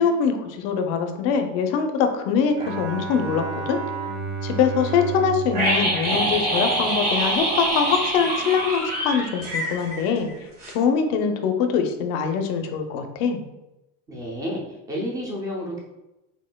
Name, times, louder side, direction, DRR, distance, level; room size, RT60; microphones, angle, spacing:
voice 1, 0.0-3.8 4.4-10.3 10.7-13.4, left 6 dB, 55° left, 6 dB, 0.5 m, -23 dB
Bowed string instrument, 2.6-7.0, right 4 dB, 70° right, 1.0 m, -32 dB
sound 1, 5.5-10.4 10.6-10.7, right 1 dB, 25° right, 1.4 m, -25 dB
voice 2, 14.1-15.8, equal, 10° right, -2 dB, 0.6 m, -30 dB
4.2 x 4.1 x 2.2 m, 0.95 s
cardioid pair, 175°, 33 cm